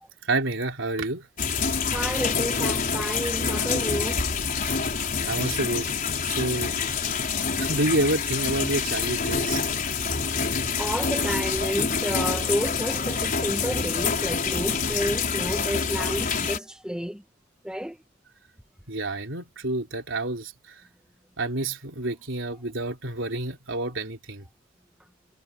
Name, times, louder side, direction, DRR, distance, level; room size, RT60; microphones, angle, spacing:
voice 1, 0.2-1.3 5.2-6.0 6.2-6.9 7.2-7.3 7.6-9.6 18.9-20.8 21.4-24.5, right 2 dB, 65° right, 3.8 m, -29 dB
sound 1, 1.4-16.6, left 5 dB, 40° left, 4.5 m, -27 dB
voice 2, 1.9-4.2 10.4-17.2 17.6-18.0, equal, 5° right, 1.0 m, -31 dB
head